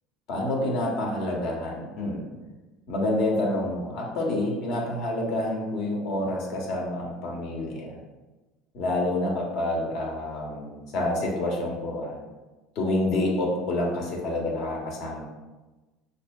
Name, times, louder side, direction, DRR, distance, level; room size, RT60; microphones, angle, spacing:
voice 1, 0.3-2.2 2.9-7.9 8.7-12.2 12.7-15.2, left 1 dB, 60° left, -1 dB, 1.0 m, -28 dB
5.8 x 2.6 x 2.3 m, 1.2 s
supercardioid pair, 115°, 0 cm